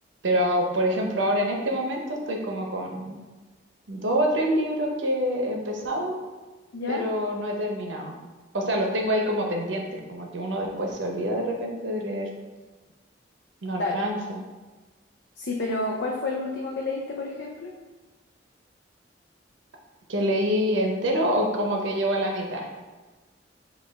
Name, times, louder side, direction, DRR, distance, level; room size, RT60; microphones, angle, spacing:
voice 1, 0.2-3.2 3.9-6.2 6.9-8.1 8.5-12.3 13.6-14.4 20.1-22.7, equal, 90° right, 1 dB, 0.7 m, -26 dB
voice 2, 6.7-7.1 13.8-13.9 15.4-17.7, left 2 dB, 70° left, -1 dB, 0.4 m, -29 dB
5.3 x 2.4 x 3.4 m, 1.3 s
head